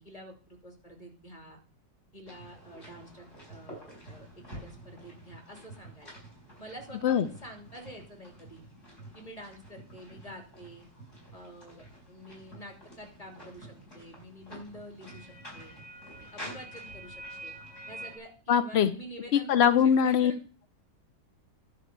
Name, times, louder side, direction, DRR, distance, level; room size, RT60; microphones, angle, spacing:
voice 1, 0.0-1.6 2.1-6.1 6.6-8.6 9.1-10.8 11.3-15.3 15.5-15.7 16.2-17.5 17.9-20.4, right 1 dB, 20° left, 3 dB, 3.1 m, -48 dB
sound 1, 2.3-18.2, right 1 dB, 45° left, 5.3 m, -48 dB
voice 2, 18.5-18.9 19.3-20.3, left 8 dB, 70° left, 12 dB, 0.6 m, -22 dB
11.0 x 5.5 x 7.9 m, 0.39 s
omnidirectional pair, 1.8 m